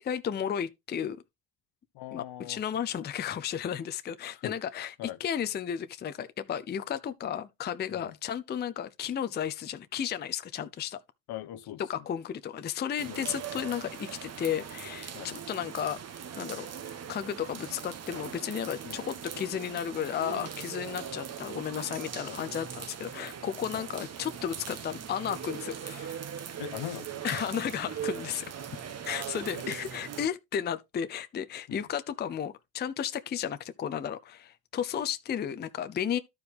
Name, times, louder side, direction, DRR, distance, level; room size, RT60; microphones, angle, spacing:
voice 1, 0.0-1.2 2.1-11.0 11.8-16.0 16.4-16.7 17.1-26.2 27.2-28.5 29.0-36.2, left 9 dB, 25° left, 0.5 m, -33 dB
voice 2, 1.9-2.6 4.4-4.6 5.0-5.2 7.9-8.1 11.3-11.8 13.1-13.4 15.1-15.3 18.8-19.0 22.2-22.4 23.7-23.9 26.6-27.2 29.5-29.6 31.7-31.8, left 12 dB, 55° left, 0.9 m, -40 dB
sound 1, 13.0-30.3, right 8 dB, 35° right, 1.0 m, -40 dB
12.0 x 4.8 x 3.4 m
supercardioid pair, 95°, 46 cm